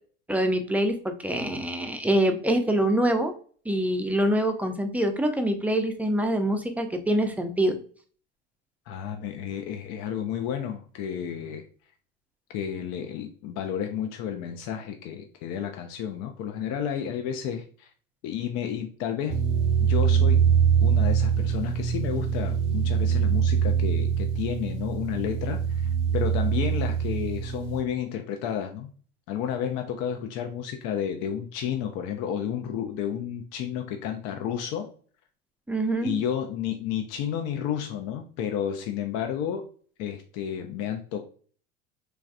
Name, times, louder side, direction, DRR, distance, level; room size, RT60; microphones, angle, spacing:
voice 1, 0.3-3.3 3.7-7.8 35.7-36.1, right 1 dB, 5° right, 6 dB, 0.4 m, -25 dB
voice 2, 8.9-11.6 12.5-17.9 18.2-19.5 19.8-20.4 20.8-28.9 29.3-34.9 36.0-39.7 40.0-41.2, left 9 dB, 60° left, 5 dB, 0.5 m, -31 dB
sound 1, 19.3-27.8, right 7 dB, 70° right, 0.6 m, -24 dB
3.2 x 2.3 x 2.4 m, 0.44 s
hypercardioid pair, 80°, 30 cm